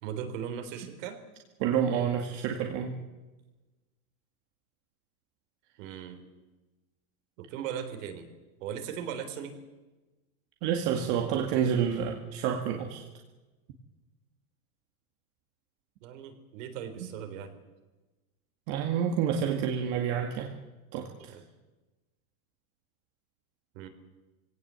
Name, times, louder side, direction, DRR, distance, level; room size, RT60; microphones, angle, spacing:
voice 1, 0.0-1.2 5.8-6.3 7.4-8.2 8.6-9.6 16.0-17.5 21.3-21.4 23.7-23.9, right 8 dB, 60° right, 7 dB, 3.8 m, -38 dB
voice 2, 1.6-3.0 10.6-13.0 18.7-20.5 20.9-21.3, right 8 dB, 45° right, 3 dB, 2.1 m, -29 dB
22.5 x 17.5 x 8.2 m, 1.1 s
supercardioid pair, 160°, 43 cm